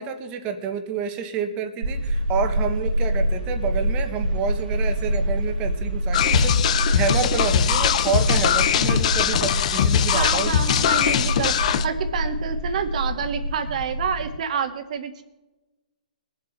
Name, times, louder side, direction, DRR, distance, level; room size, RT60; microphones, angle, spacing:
voice 1, 0.0-10.6, right 6 dB, 25° right, 7 dB, 1.5 m, -29 dB
sound 1, 1.8-14.4, equal, 85° right, 2.8 m, -26 dB
sound 2, 6.1-11.9, left 9 dB, 50° left, 0.8 m, -21 dB
voice 2, 10.1-11.5 11.8-15.2, right 7 dB, 55° right, 6 dB, 1.8 m, -28 dB
20.5 x 8.0 x 4.3 m, 1.1 s
hypercardioid pair, 150°, 5 cm